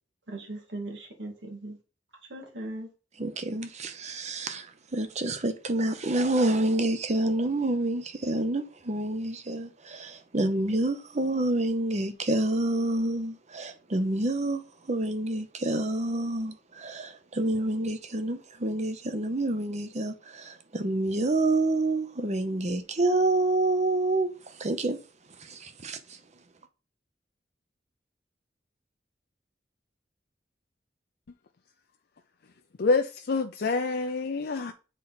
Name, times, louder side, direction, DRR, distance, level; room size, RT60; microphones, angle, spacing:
voice 1, 0.3-1.8 2.3-2.9, right 1 dB, 90° right, 2.2 m, -38 dB
voice 2, 3.2-4.7 4.9-24.3 24.6-25.0 25.4-26.2, right 2 dB, 40° right, 0.8 m, -28 dB
voice 3, 32.8-34.7, left 3 dB, 60° left, 0.5 m, -27 dB
7.4 x 4.0 x 4.2 m
head